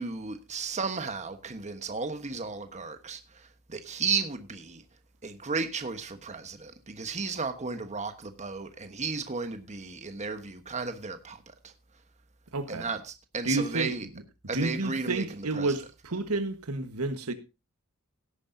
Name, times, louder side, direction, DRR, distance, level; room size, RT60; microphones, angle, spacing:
voice 1, 0.0-4.8 5.2-11.7 12.7-14.1 14.5-15.7, right 4 dB, 30° right, 1.2 m, -34 dB
voice 2, 12.5-12.9 13.4-13.9 14.5-17.3, right 2 dB, 80° right, 1.4 m, -30 dB
17.0 x 9.8 x 2.7 m
head